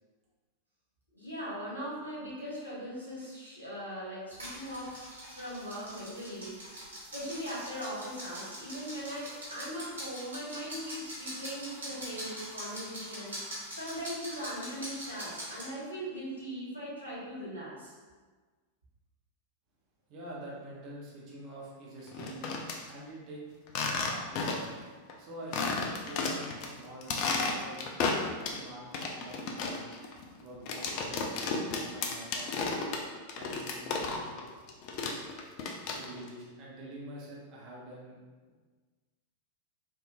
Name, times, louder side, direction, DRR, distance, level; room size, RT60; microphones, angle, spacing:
voice 1, 1.1-5.0 5.3-6.9 7.1-17.9, equal, 90° left, -8 dB, 1.3 m, -40 dB
sound 1, 4.3-15.7, equal, 70° right, 1.2 m, -43 dB
voice 2, 20.1-22.4 22.9-23.4 24.0-24.6 25.2-27.9 28.5-29.9 30.4-32.5 33.4-34.2 35.9-38.2, right 1 dB, 40° right, -5 dB, 0.8 m, -46 dB
sound 2, 22.1-22.8 23.7-24.8 25.1-25.2 25.5-26.7 27.0-28.6 28.9-34.4 34.7-36.3, left 4 dB, 45° left, 0.4 m, -33 dB
3.5 x 2.6 x 2.6 m, 1.4 s
figure-of-eight pair, 90°, 0 cm